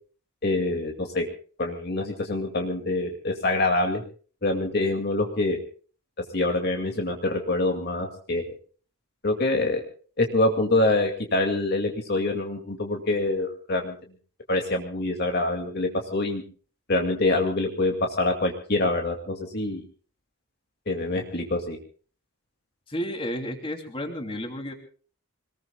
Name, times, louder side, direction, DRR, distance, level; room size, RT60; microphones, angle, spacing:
voice 1, 0.4-1.3 1.6-4.0 4.4-5.6 6.3-8.4 9.2-9.8 10.2-14.0 14.5-16.4 16.9-19.8 20.9-21.8, left 2 dB, 45° left, 3 dB, 2.3 m, -25 dB
voice 2, 22.9-24.7, equal, 25° left, 4 dB, 2.9 m, -32 dB
26.5 x 20.0 x 2.3 m, 0.41 s
head